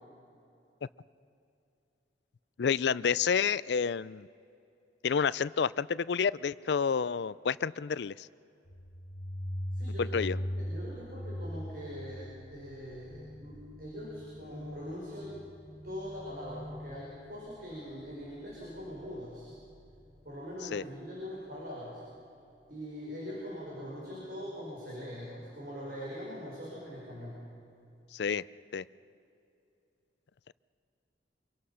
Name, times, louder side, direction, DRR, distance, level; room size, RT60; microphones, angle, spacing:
voice 1, 2.6-4.3 5.0-8.3 10.0-10.4 20.7-20.8 28.1-28.4 28.7-28.8, left 6 dB, 65° left, 18 dB, 0.4 m, -29 dB
sound 1, 8.6-20.2, equal, 85° left, 1.8 m, -41 dB
voice 2, 9.7-15.4 15.8-19.5 20.2-22.0 22.7-27.5, equal, 55° right, -5 dB, 5.6 m, -42 dB
26.0 x 23.0 x 5.7 m, 2.7 s
head